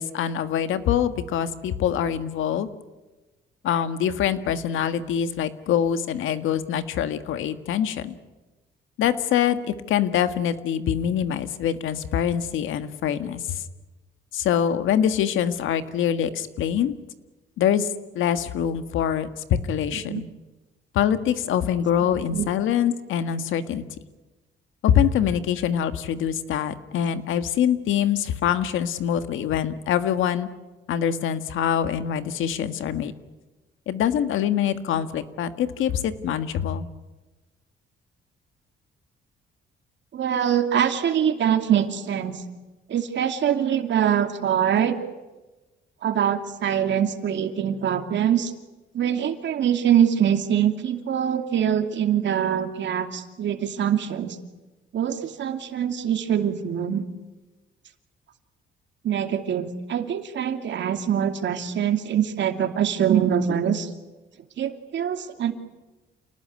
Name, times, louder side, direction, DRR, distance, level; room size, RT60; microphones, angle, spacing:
voice 1, 0.0-2.7 3.6-8.2 9.0-13.6 14.3-16.9 17.6-17.9 18.1-19.3 19.7-20.3 20.9-23.8 24.8-30.5 30.9-33.1 33.9-36.9, left 9 dB, 85° left, 10 dB, 1.7 m, -24 dB
voice 2, 22.0-22.5 40.1-42.4 42.9-45.0 46.0-48.5 48.9-54.4 54.9-57.0 59.0-63.9 64.6-65.5, right 9 dB, 65° right, 6 dB, 2.6 m, -24 dB
28.5 x 19.5 x 9.6 m, 1.2 s
cardioid pair, 90°, 20 cm